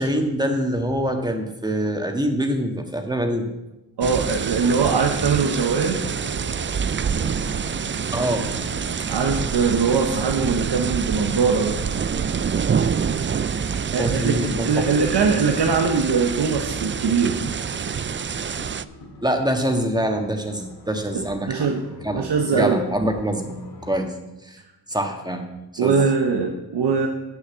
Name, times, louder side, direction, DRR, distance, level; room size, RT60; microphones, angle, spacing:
voice 1, 0.0-3.5 8.1-8.5 14.0-14.7 19.2-21.7 22.0-22.2 22.5-23.5 23.8-24.1 24.4-24.6 24.9-25.4 25.7-26.0, right 1 dB, 10° right, 4 dB, 1.6 m, -24 dB
sound 1, 4.0-18.8, right 7 dB, 30° right, 0.4 m, -26 dB
voice 2, 4.0-6.0 9.1-11.8 13.9-14.4 14.6-17.4 21.1-21.8 22.1-22.8 25.8-27.1, right 5 dB, 85° right, 2 dB, 1.0 m, -21 dB
sound 2, 4.6-23.9, left 3 dB, 70° left, 2.2 m, -42 dB
8.1 x 6.8 x 7.4 m, 1.0 s
cardioid pair, 65°, 40 cm